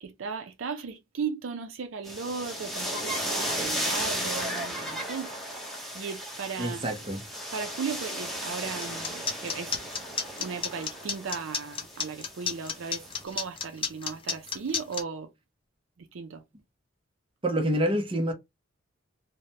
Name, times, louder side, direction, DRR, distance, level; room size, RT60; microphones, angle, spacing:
voice 1, 0.0-5.3 5.9-6.8 7.5-9.8 10.4-15.3 16.0-16.4, right 5 dB, 70° right, 0.5 m, -36 dB
sound 1, 2.0-13.2, equal, ahead, 0.8 m, -35 dB
voice 2, 6.6-7.2 17.4-18.3, right 1 dB, 25° right, 0.6 m, -27 dB
sound 2, 8.8-15.0, left 6 dB, 25° left, 0.4 m, -31 dB
3.2 x 2.1 x 2.7 m
head